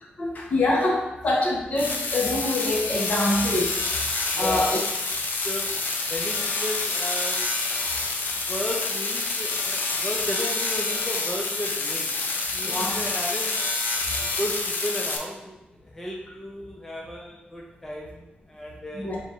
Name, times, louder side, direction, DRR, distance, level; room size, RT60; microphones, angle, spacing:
voice 1, 0.2-3.8 4.4-4.7 12.6-13.0 18.9-19.2, left 2 dB, 45° left, -2 dB, 0.9 m, -25 dB
sound 1, 1.8-15.2, left 3 dB, 70° left, 0.5 m, -27 dB
voice 2, 4.3-4.8 5.4-5.7 6.1-7.5 8.4-13.6 14.2-15.6 15.8-19.1, left 1 dB, 10° left, -2 dB, 0.4 m, -34 dB
3.9 x 2.4 x 4.0 m, 0.95 s
wide cardioid pair, 140°, 3 cm